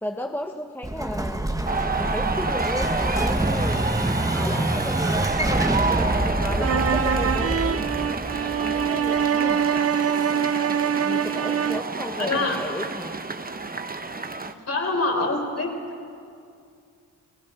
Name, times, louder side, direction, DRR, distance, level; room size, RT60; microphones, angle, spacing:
voice 1, 0.0-1.5 2.0-3.9 4.3-7.8 8.6-9.6 11.0-13.2, left 1 dB, 5° left, 4 dB, 1.0 m, -34 dB
Explosion, 0.8-9.5, right 1 dB, 10° right, 1.3 m, -26 dB
sound 1, 1.7-14.5, right 3 dB, 25° right, 1.1 m, -29 dB
sound 2, 6.6-12.0, right 8 dB, 45° right, 0.6 m, -24 dB
voice 2, 12.2-12.6 14.5-15.7, left 3 dB, 45° left, 2 dB, 4.8 m, -25 dB
30.0 x 17.5 x 5.9 m, 2.4 s
cardioid pair, 65°, 34 cm